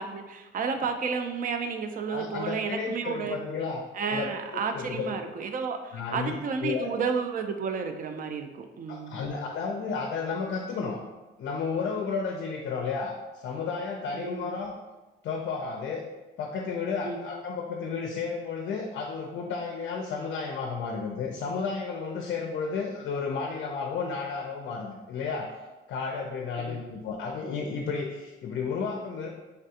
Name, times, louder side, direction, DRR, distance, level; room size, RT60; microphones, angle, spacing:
voice 1, 0.0-3.4 3.9-9.2 14.1-14.5 17.0-17.2 26.6-26.8, right 5 dB, 45° right, 6 dB, 0.4 m, -32 dB
voice 2, 2.1-4.3 4.5-5.1 5.9-6.9 8.9-11.0 11.4-14.7 15.2-16.0 16.4-25.6 25.9-29.3, left 5 dB, 65° left, 2 dB, 0.4 m, -32 dB
3.3 x 2.3 x 2.7 m, 1.1 s
cardioid pair, 90°, 20 cm